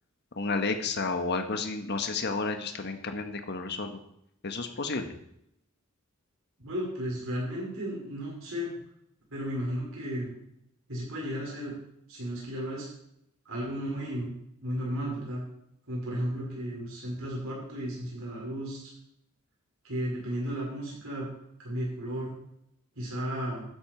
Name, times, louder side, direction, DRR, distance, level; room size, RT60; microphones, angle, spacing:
voice 1, 0.3-4.0 4.4-5.1, left 3 dB, 50° left, 7 dB, 1.4 m, -31 dB
voice 2, 6.6-8.7 9.3-10.3 10.9-11.7 12.1-12.9 13.5-14.3 14.6-15.4 15.9-18.8 19.8-21.3 21.6-22.3 23.0-23.6, equal, 70° right, -4 dB, 5.4 m, -34 dB
12.5 x 10.5 x 4.6 m, 0.76 s
head